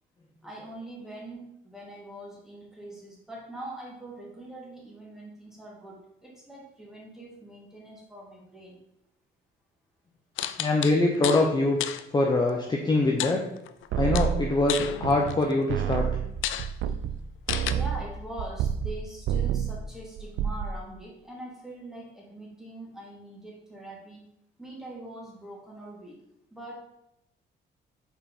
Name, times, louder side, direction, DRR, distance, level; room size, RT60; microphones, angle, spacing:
voice 1, 0.4-8.8 16.9-17.0 17.7-24.2 24.6-26.2 26.5-26.8, right 1 dB, ahead, -4 dB, 2.4 m, -43 dB
sound 1, 10.4-11.5 11.8-12.0 13.2-13.9 14.2-15.5 16.0-16.1 16.4-16.7 17.5-17.7, left 11 dB, 80° left, 0.4 m, -32 dB
voice 2, 10.6-11.8 12.1-13.4 14.0-16.1, left 2 dB, 20° left, 0 dB, 0.8 m, -23 dB
sound 2, 13.9-15.4 15.7-19.0 19.3-19.8 20.2-20.7, right 9 dB, 75° right, 0.5 m, -29 dB
5.6 x 4.3 x 4.2 m, 0.81 s
cardioid pair, 90°, 20 cm